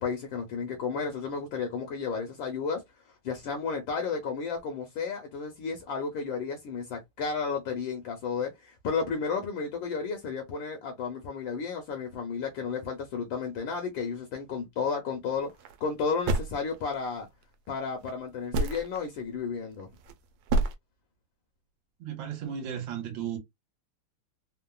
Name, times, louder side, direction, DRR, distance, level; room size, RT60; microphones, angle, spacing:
voice 1, 0.0-2.8 3.2-15.5 15.8-17.3 17.7-19.9, left 5 dB, 70° left, 1.3 m, -32 dB
sound 1, 15.4-15.8 16.3-17.1 18.0-18.1 18.5-19.0 19.8-20.1 20.5-20.7, right 2 dB, 85° right, 1.5 m, -27 dB
voice 2, 22.0-23.4, right 9 dB, 65° right, 1.6 m, -35 dB
3.7 x 2.0 x 2.2 m
omnidirectional pair, 2.4 m